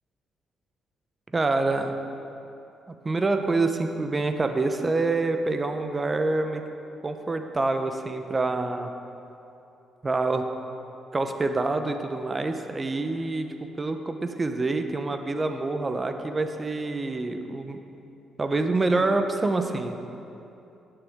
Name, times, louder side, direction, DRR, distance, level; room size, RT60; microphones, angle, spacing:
voice 1, 1.3-2.0 3.0-6.6 7.0-8.9 10.0-10.5 11.1-17.8 18.4-19.9, right 3 dB, 25° right, 7 dB, 0.8 m, -26 dB
16.5 x 6.8 x 3.6 m, 2.8 s
cardioid pair, 90°, 0 cm